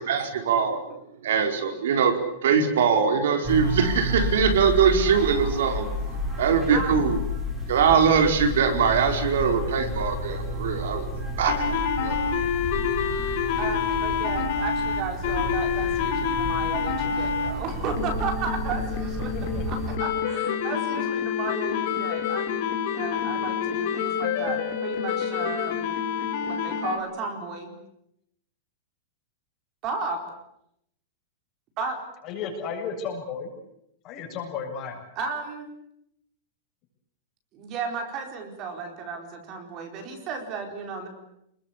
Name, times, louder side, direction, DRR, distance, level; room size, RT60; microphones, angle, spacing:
voice 1, 0.1-0.8 1.2-2.1 2.4-5.9 6.4-7.2 7.7-12.2, right 6 dB, 75° right, 5 dB, 4.8 m, -22 dB
sound 1, 3.4-20.0, equal, 5° right, 5.6 m, -31 dB
voice 2, 6.7-7.0 13.6-19.3 19.7-22.5 22.9-25.9 26.4-27.7 29.8-30.2 31.8-32.0 35.2-35.7 37.5-41.1, right 4 dB, 25° right, 4 dB, 4.4 m, -34 dB
sound 2, 11.5-17.5 18.0-27.0, left 7 dB, 45° left, 5.0 m, -27 dB
voice 3, 19.3-19.6 23.3-23.4 32.2-33.5 34.0-35.0, left 6 dB, 25° left, 2 dB, 7.5 m, -34 dB
28.5 x 21.5 x 8.6 m, 0.77 s
supercardioid pair, 175°, 0 cm